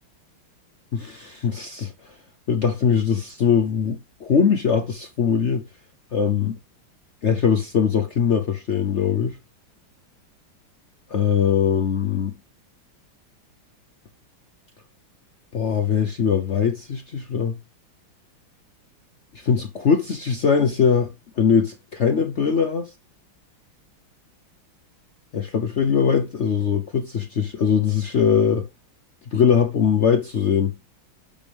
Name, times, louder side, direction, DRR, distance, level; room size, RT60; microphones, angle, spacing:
voice 1, 0.9-2.1 2.5-5.6 6.1-6.6 7.2-9.4 11.1-12.4 15.5-17.6 19.3-22.9 25.3-28.7 29.3-30.7, left 7 dB, 70° left, 0.6 m, -21 dB
6.9 x 6.2 x 3.5 m
omnidirectional pair, 2.3 m